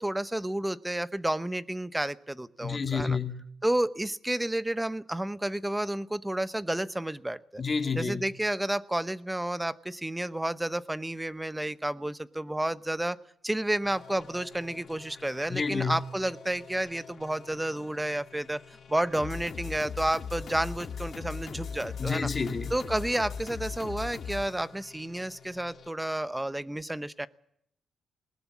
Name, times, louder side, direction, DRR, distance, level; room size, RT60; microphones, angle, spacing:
voice 1, 0.0-3.2 3.6-7.6 8.0-13.2 13.4-18.6 18.9-22.3 22.7-27.3, right 1 dB, 10° right, 0.8 m, -31 dB
voice 2, 2.6-3.4 7.6-8.3 15.5-16.0 22.0-22.7, left 5 dB, 35° left, 2.2 m, -29 dB
sound 1, 13.8-25.9, left 6 dB, 50° left, 1.8 m, -41 dB
20.0 x 20.0 x 8.4 m
cardioid pair, 120°, 0 cm